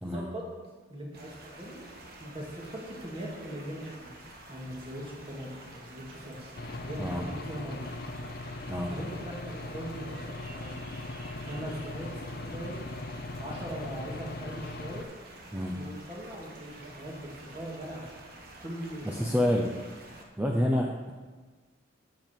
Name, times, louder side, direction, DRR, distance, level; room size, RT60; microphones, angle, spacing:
voice 1, 0.0-0.4 0.9-1.8 2.2-4.2 4.5-7.9 8.9-10.8 11.3-12.8 13.4-15.1 15.7-18.2 18.6-19.5, equal, 30° right, -3 dB, 2.3 m, -40 dB
sound 1, 1.1-20.2, right 1 dB, 50° right, 1.4 m, -49 dB
Aircraft / Engine, 6.6-15.0, left 2 dB, 50° left, 0.6 m, -40 dB
voice 2, 19.0-19.7 20.4-21.1, equal, 10° right, 0 dB, 0.7 m, -28 dB
13.5 x 6.9 x 4.6 m, 1.4 s
head